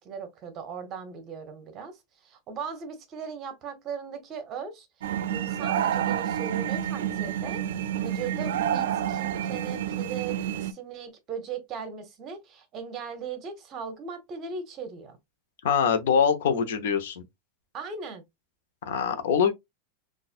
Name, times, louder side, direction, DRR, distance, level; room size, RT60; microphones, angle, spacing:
voice 1, 0.0-4.9 5.3-7.6 8.0-15.2 17.7-18.2, right 6 dB, 30° right, 0.9 m, -38 dB
sound 1, 5.0-10.7, right 10 dB, 85° right, 0.4 m, -29 dB
voice 2, 15.6-17.2 18.9-19.5, left 7 dB, 80° left, 0.8 m, -23 dB
4.1 x 2.5 x 2.5 m
supercardioid pair, 155°, 0 cm